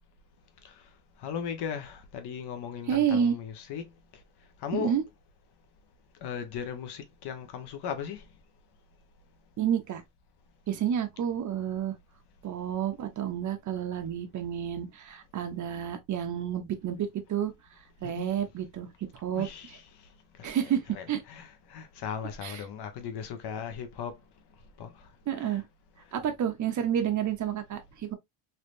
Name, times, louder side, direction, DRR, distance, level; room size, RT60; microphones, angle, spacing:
voice 1, 1.2-3.9 4.6-4.9 6.2-8.2 18.0-18.3 19.3-19.8 20.4-20.5 20.9-24.2 24.8-25.1 25.4-25.6, left 7 dB, 60° left, 1.1 m, -37 dB
voice 2, 2.9-3.3 4.7-5.0 9.6-10.0 10.7-12.0 12.4-17.5 18.0-19.5 20.4-21.2 22.4-22.6 25.3-25.6 26.1-28.1, right 9 dB, 40° right, 1.0 m, -30 dB
3.3 x 2.8 x 2.5 m
cardioid pair, 120°, 45 cm